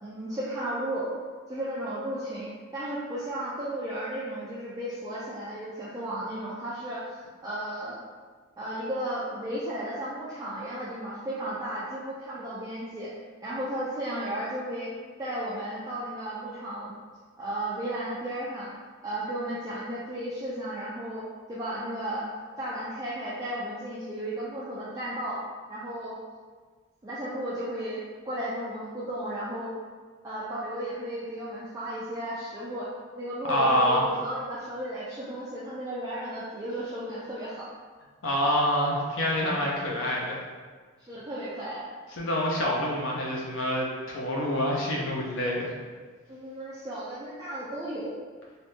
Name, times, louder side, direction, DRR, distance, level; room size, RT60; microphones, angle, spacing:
voice 1, 0.0-1.1 1.5-7.0 7.4-8.0 8.6-13.1 13.4-14.9 15.2-16.9 17.4-18.7 19.0-22.3 22.6-26.2 27.0-29.7 30.2-32.9 33.2-37.7 41.1-41.8 46.3-48.1, right 1 dB, 15° right, -9 dB, 0.4 m, -34 dB
voice 2, 33.5-34.0 38.2-40.4 42.2-45.7, equal, 75° left, -3 dB, 0.6 m, -26 dB
3.4 x 2.6 x 2.7 m, 1.5 s
head